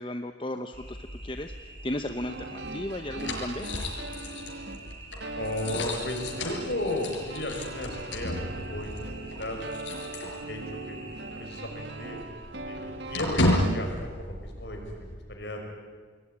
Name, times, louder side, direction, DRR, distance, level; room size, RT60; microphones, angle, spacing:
voice 1, 0.0-3.7, left 1 dB, 25° left, 7 dB, 0.9 m, -35 dB
sound 1, 0.7-13.6, right 2 dB, 30° right, 6.7 m, -46 dB
sound 2, 2.0-10.9 11.2-11.3 11.7-15.1, left 1 dB, 80° left, 5.9 m, -33 dB
sound 3, 2.3-13.7, right 2 dB, 65° right, 1.8 m, -40 dB
voice 2, 5.4-9.8 10.3-10.6 10.9-11.0 11.3-12.2 12.7-15.7, left 1 dB, 60° left, 3 dB, 6.0 m, -35 dB
27.0 x 20.5 x 9.9 m, 1.5 s
head